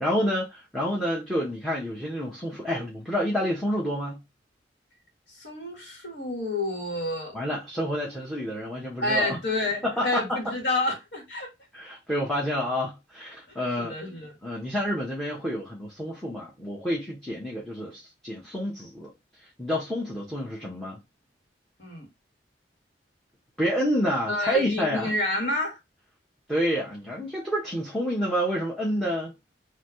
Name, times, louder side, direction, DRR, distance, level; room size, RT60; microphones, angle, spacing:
voice 1, 0.0-4.2 7.3-9.4 9.8-10.5 11.7-14.0 14.4-19.1 19.6-21.0 23.6-25.1 26.5-29.3, equal, 5° left, 1.1 m, -28 dB
voice 2, 5.3-7.4 9.0-11.5 13.8-14.4 20.6-20.7 21.8-22.1 24.3-25.8, left 2 dB, 70° left, 1.9 m, -29 dB
4.1 x 3.0 x 3.1 m
head